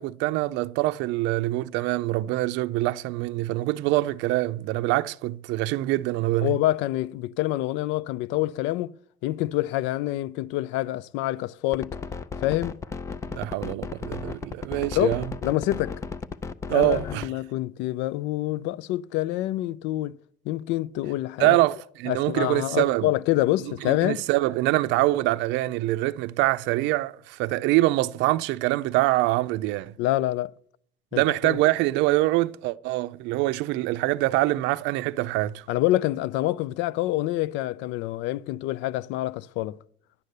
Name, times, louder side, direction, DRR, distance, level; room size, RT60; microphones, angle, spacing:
voice 1, 0.0-6.6 13.3-15.2 16.7-17.3 21.4-23.1 23.8-29.9 31.1-35.6, right 18 dB, 85° right, 0.5 m, -24 dB
voice 2, 6.4-8.9 9.2-12.0 12.4-12.8 14.9-16.0 16.7-20.2 20.5-21.6 22.1-24.2 30.0-30.5 31.1-31.6 35.7-39.8, left 16 dB, 85° left, 0.4 m, -26 dB
sound 1, 11.7-17.3, left 5 dB, 15° left, 0.3 m, -34 dB
10.5 x 6.6 x 8.2 m
cardioid pair, 165°, 18 cm